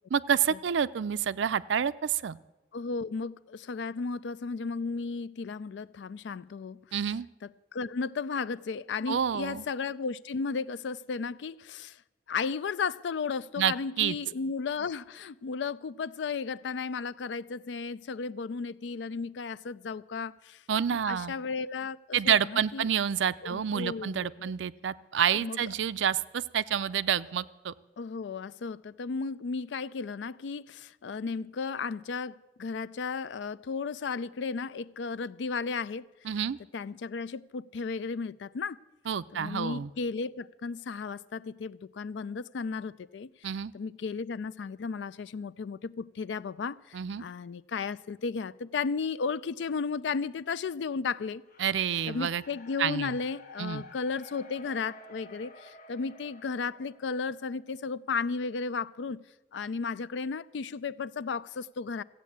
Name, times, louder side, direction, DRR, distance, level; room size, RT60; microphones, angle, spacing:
voice 1, 0.1-2.4 6.9-7.3 9.1-9.6 13.6-14.2 20.7-21.3 22.1-27.7 36.2-36.6 39.1-39.9 43.4-43.7 46.9-47.2 51.6-52.4 52.8-53.2 53.6-53.8, right 8 dB, 85° right, 0.4 m, -28 dB
voice 2, 2.7-6.8 7.7-12.0 12.3-20.6 20.9-22.9 23.4-24.5 25.3-25.6 28.0-36.1 36.7-38.8 39.3-51.4 52.1-59.2 59.5-62.0, left 5 dB, 75° left, 0.4 m, -34 dB
sound 1, 51.5-57.6, left 2 dB, 50° left, 1.1 m, -52 dB
15.0 x 8.3 x 8.5 m
head